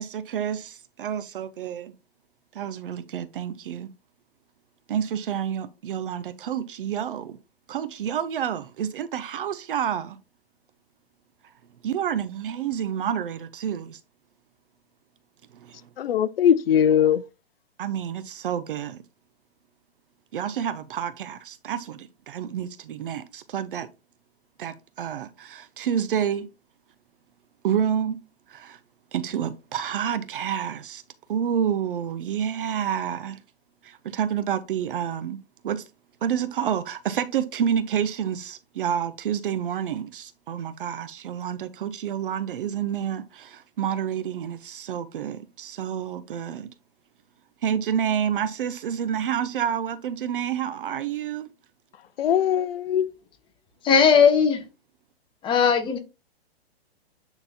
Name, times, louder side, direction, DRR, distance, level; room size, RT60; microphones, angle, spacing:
voice 1, 0.0-1.9 2.5-3.9 4.9-7.4 7.7-10.2 11.8-14.0 15.5-15.9 17.8-19.0 20.3-23.9 24.6-26.5 27.6-28.2 28.5-28.8 29.1-31.0 31.3-33.4 33.8-35.4 35.6-35.9 36.2-46.7 47.6-51.5, right 9 dB, 55° right, 0.6 m, -29 dB
voice 2, 16.0-17.2 52.2-53.1, left 9 dB, 65° left, 0.6 m, -20 dB
voice 3, 53.8-54.6 55.4-56.0, left 6 dB, 15° left, 0.8 m, -18 dB
8.8 x 3.9 x 2.7 m
figure-of-eight pair, 120°, 32 cm